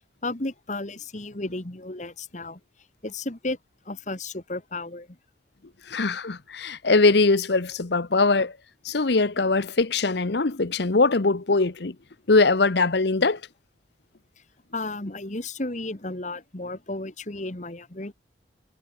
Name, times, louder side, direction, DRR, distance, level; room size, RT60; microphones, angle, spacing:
voice 1, 0.2-2.6 3.0-3.6 3.8-5.2 14.7-18.1, left 2 dB, 40° left, 1.6 m, -33 dB
voice 2, 5.9-8.5 8.8-11.9 12.3-13.4, left 3 dB, 60° left, 0.9 m, -21 dB
head